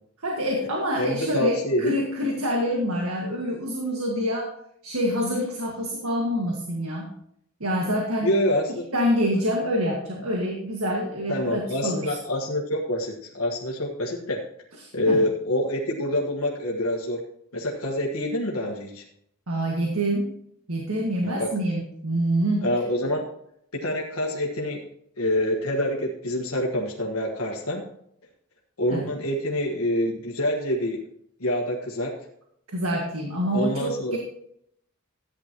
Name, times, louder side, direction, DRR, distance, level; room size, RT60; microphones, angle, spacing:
voice 1, 0.2-4.6 4.8-7.1 7.6-8.3 8.9-12.2 14.8-15.2 19.5-20.3 20.7-22.7 28.9-29.1 32.7-34.2, equal, 90° right, 0 dB, 1.8 m, -26 dB
voice 2, 1.0-1.9 8.2-8.8 11.3-14.4 14.9-17.2 17.5-19.0 21.2-21.5 22.6-23.2 23.7-24.8 25.2-27.8 28.8-31.0 31.4-32.1 33.5-34.2, left 1 dB, 90° left, -1 dB, 1.6 m, -26 dB
14.0 x 9.8 x 3.0 m, 0.72 s
head